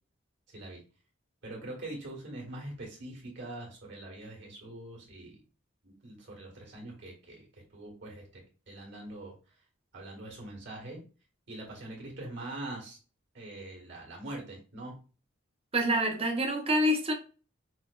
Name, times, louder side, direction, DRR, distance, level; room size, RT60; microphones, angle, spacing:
voice 1, 1.4-5.4 5.8-7.5 7.7-9.3 9.9-11.0 11.5-13.0 13.3-15.0, right 1 dB, 60° right, 1.9 m, -43 dB
voice 2, 15.7-17.1, equal, 30° right, 0.8 m, -26 dB
5.7 x 2.9 x 2.4 m
head